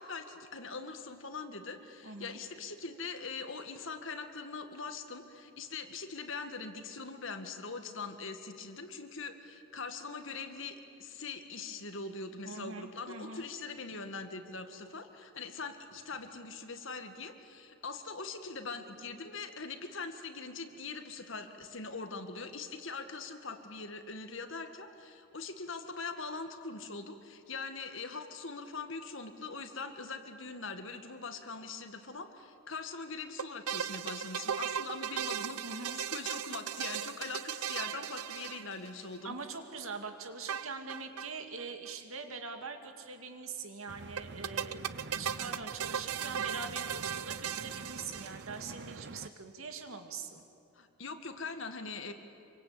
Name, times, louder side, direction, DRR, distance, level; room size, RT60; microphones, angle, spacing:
voice 1, 0.0-39.4 50.8-52.1, left 4 dB, 60° left, 7 dB, 1.9 m, -42 dB
voice 2, 2.0-2.4 12.4-13.5 35.6-36.0 39.2-50.4, right 4 dB, 70° right, 6 dB, 2.4 m, -43 dB
sound 1, 33.4-39.2 40.5-41.3 41.6-41.7 41.9-42.0 44.2-48.7, right 9 dB, 85° right, 0.8 m, -37 dB
sound 2, 43.9-49.3, right 3 dB, 50° right, 0.7 m, -47 dB
26.5 x 24.5 x 8.8 m, 2.7 s
head